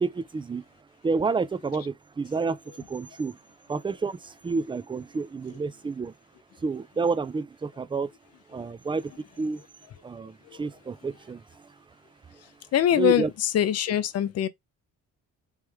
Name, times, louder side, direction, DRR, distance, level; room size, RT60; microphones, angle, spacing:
voice 1, 0.0-0.6 1.0-2.6 2.9-3.4 3.7-6.1 6.6-8.1 8.5-9.1 9.4-9.6 10.0-11.7 13.0-13.3, right 4 dB, 15° right, 0.4 m, -29 dB
voice 2, 12.7-14.5, left 11 dB, 55° left, 0.6 m, -23 dB
3.4 x 3.2 x 3.2 m
cardioid pair, 90°, 30 cm